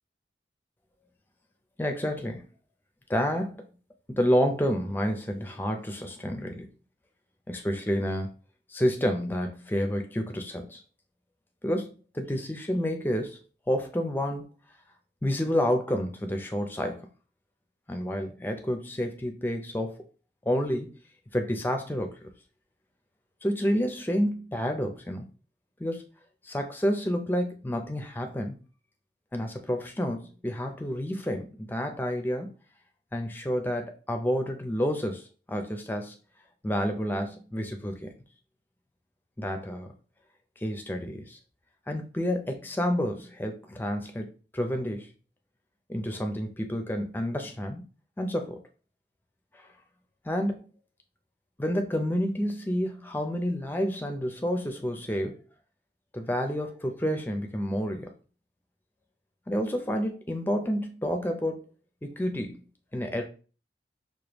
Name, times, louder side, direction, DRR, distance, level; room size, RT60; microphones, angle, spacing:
voice 1, 1.8-2.5 3.1-3.6 4.1-6.7 7.5-8.3 8.7-10.8 11.6-13.4 13.7-14.5 15.2-17.1 17.9-20.0 20.5-21.0 21.3-22.2 23.4-25.3 25.8-26.0 26.4-28.5 29.3-32.5 33.1-36.2 36.6-38.1 39.4-39.9 40.6-41.4 41.9-44.3 44.5-45.1 45.9-47.8 48.2-48.6 49.6-49.7 50.2-50.7 51.6-55.4 56.1-58.1 59.5-61.6 62.0-62.6 62.9-63.2, equal, 10° left, 4 dB, 0.4 m, -29 dB
4.9 x 2.2 x 2.9 m, 0.36 s
head